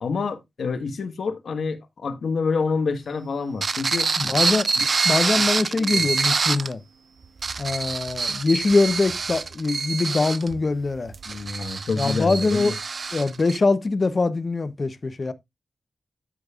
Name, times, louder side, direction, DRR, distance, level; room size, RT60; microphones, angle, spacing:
voice 1, 0.0-4.1 4.8-4.9 5.3-5.4 5.7-6.1 11.2-12.7, left 4 dB, 80° left, 1.4 m, -28 dB
sound 1, 3.6-6.7 7.2-13.6, right 4 dB, 50° right, 0.4 m, -26 dB
voice 2, 4.2-4.7 5.0-6.8 7.6-11.1 12.0-12.7 13.1-15.3, left 3 dB, 40° left, 0.8 m, -23 dB
13.0 x 5.2 x 2.4 m
wide cardioid pair, 140°, 0 cm